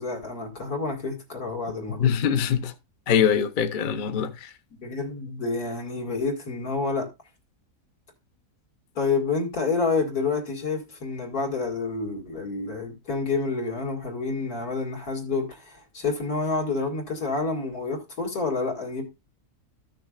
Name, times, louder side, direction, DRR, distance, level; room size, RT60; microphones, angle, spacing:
voice 1, 0.0-2.1 4.8-7.1 9.0-19.0, left 4 dB, 70° left, 2.8 m, -28 dB
voice 2, 2.0-2.7 3.1-4.5, left 8 dB, 45° left, 0.7 m, -23 dB
14.5 x 6.4 x 2.4 m
omnidirectional pair, 1.7 m